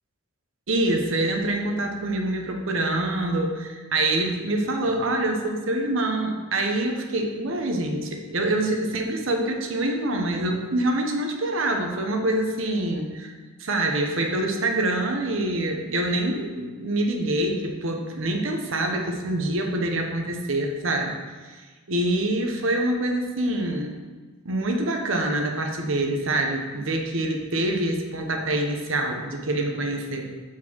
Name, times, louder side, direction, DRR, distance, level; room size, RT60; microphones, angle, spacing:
voice 1, 0.7-13.3 13.6-21.2 21.4-21.6 21.9-24.0 24.4-30.3, right 1 dB, 70° right, 2 dB, 1.0 m, -25 dB
6.0 x 4.6 x 6.1 m, 1.4 s
head